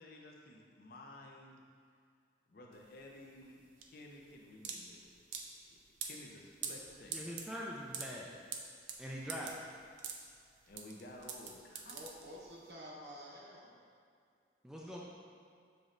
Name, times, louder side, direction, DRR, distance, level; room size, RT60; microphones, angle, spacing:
voice 1, 0.0-1.6 2.5-7.3 10.7-12.0 12.3-12.4, left 1 dB, 55° left, 0 dB, 0.5 m, -54 dB
sound 1, 2.7-12.7, right 6 dB, 85° right, 0.4 m, -45 dB
voice 2, 7.1-8.4 9.0-9.7 14.6-15.0, equal, 5° right, -4 dB, 0.3 m, -43 dB
voice 3, 11.9-13.7 14.9-15.0, equal, 70° right, -4 dB, 0.9 m, -50 dB
6.7 x 3.1 x 2.5 m, 2.2 s
head